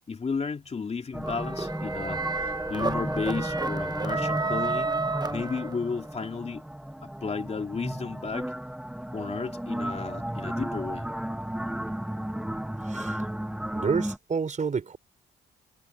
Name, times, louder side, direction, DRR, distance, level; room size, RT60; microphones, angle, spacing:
voice 1, 0.1-4.9 5.3-6.6 7.2-8.5 9.1-11.1, left 5 dB, 30° left, 2.5 m, -33 dB
sound 1, 1.1-14.2, right 1 dB, 5° right, 1.7 m, -34 dB
sound 2, 1.2-6.1, right 3 dB, 20° right, 1.0 m, -31 dB
voice 2, 12.8-13.2 13.7-15.0, right 5 dB, 40° right, 4.5 m, -29 dB
cardioid pair, 90°, 20 cm